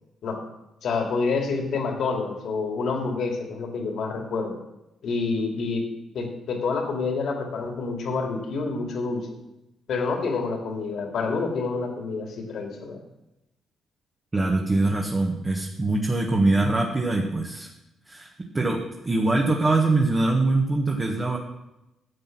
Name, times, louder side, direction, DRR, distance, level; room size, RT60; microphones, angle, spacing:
voice 1, 0.8-4.6 5.0-5.8 6.1-9.3 9.9-13.0, left 4 dB, 65° left, 3 dB, 2.5 m, -28 dB
voice 2, 14.3-17.7 18.1-21.4, right 2 dB, 25° right, 0 dB, 1.5 m, -23 dB
11.5 x 7.7 x 6.0 m, 0.92 s
cardioid pair, 90°, 0 cm